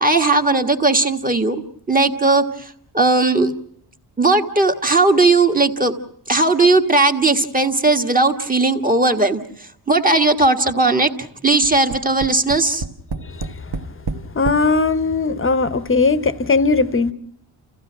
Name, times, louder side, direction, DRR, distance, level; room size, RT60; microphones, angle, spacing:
voice 1, 0.0-1.6 1.9-3.5 4.2-5.9 6.3-9.4 9.9-12.8, right 2 dB, 20° right, 1.5 m, -17 dB
Tap, 11.6-14.7 15.5-15.6 15.9-16.0, right 4 dB, 65° right, 1.5 m, -29 dB
voice 2, 13.2-13.5 14.3-17.1, left 4 dB, 25° left, 1.0 m, -18 dB
30.0 x 15.5 x 6.0 m
wide cardioid pair, 110°, 46 cm